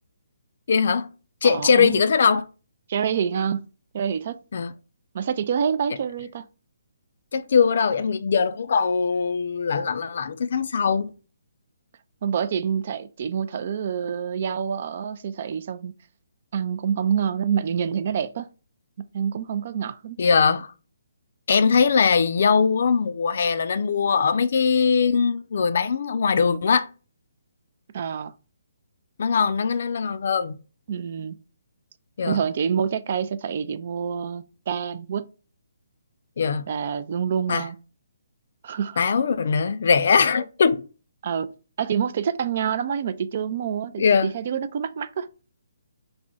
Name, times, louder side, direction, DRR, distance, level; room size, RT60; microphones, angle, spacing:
voice 1, 0.7-1.1 1.4-2.5 4.5-4.7 7.3-11.1 20.2-20.7 21.5-26.9 29.2-30.6 32.2-32.4 36.4-36.7 37.5-37.6 39.0-40.8 44.0-44.3, left 5 dB, 55° left, 0.3 m, -21 dB
voice 2, 1.4-2.0 2.9-3.6 3.9-4.4 5.1-6.5 12.2-15.9 16.5-18.5 19.0-20.2 27.9-28.3 30.9-31.4 32.3-35.3 36.7-37.8 38.6-39.0 41.2-41.5 41.8-45.3, right 7 dB, 45° right, 0.3 m, -27 dB
3.3 x 2.2 x 3.9 m
figure-of-eight pair, 140°, 0 cm